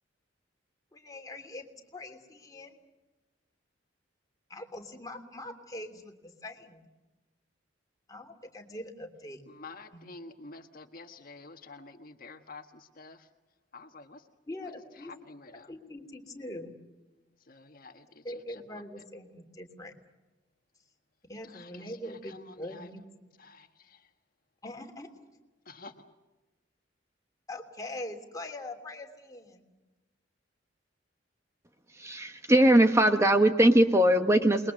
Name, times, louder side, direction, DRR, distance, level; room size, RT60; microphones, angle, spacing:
voice 1, 0.9-2.8 4.5-6.9 8.1-9.4 9.9-10.1 14.5-15.1 15.7-16.8 18.2-19.9 21.3-23.0 24.6-25.1 27.5-29.6, left 1 dB, 20° left, 3 dB, 3.1 m, -42 dB
voice 2, 9.5-13.3 13.7-14.2 15.0-15.7 17.5-18.2 18.5-18.6 21.4-21.9 22.3-22.9 23.4-24.0 25.7-25.9, left 3 dB, 50° left, 6 dB, 1.4 m, -49 dB
voice 3, 32.0-34.7, right 1 dB, 15° right, 6 dB, 1.1 m, -21 dB
28.5 x 22.0 x 6.5 m, 1.1 s
head